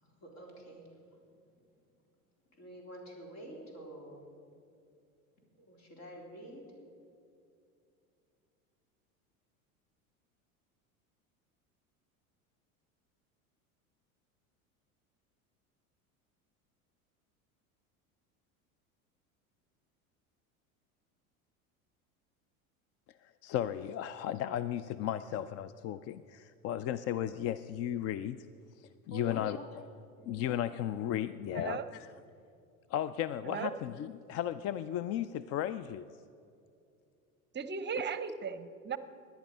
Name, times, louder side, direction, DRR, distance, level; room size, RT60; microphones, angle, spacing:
voice 1, 0.2-0.8 2.6-4.2 5.6-6.6 29.1-29.7 30.3-30.5, right 1 dB, 55° left, 0 dB, 3.9 m, -48 dB
voice 2, 23.2-28.5 28.8-29.8 30.3-32.1 32.9-36.1, left 11 dB, 35° left, 15 dB, 0.4 m, -35 dB
voice 3, 31.5-31.9 33.4-33.7 37.5-39.0, right 6 dB, 25° right, 13 dB, 0.7 m, -37 dB
17.5 x 10.5 x 5.5 m, 2.5 s
hypercardioid pair, 85°, 43 cm